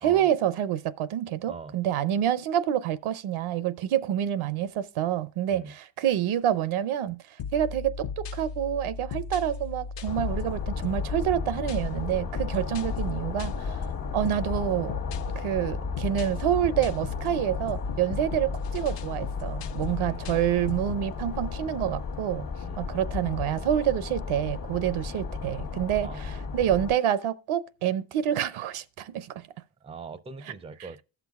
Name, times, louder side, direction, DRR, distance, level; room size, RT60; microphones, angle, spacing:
voice 1, 0.0-7.2 7.5-13.8 14.1-15.0 15.4-22.5 22.8-29.4 30.5-30.6, right 10 dB, 75° right, 0.6 m, -27 dB
sound 1, 7.4-21.1, left 5 dB, 60° left, 0.6 m, -36 dB
sound 2, 10.1-26.9, left 5 dB, 45° left, 1.1 m, -35 dB
voice 2, 29.8-31.0, right 4 dB, 15° right, 0.4 m, -42 dB
16.0 x 6.0 x 2.3 m
cardioid pair, 70°, 49 cm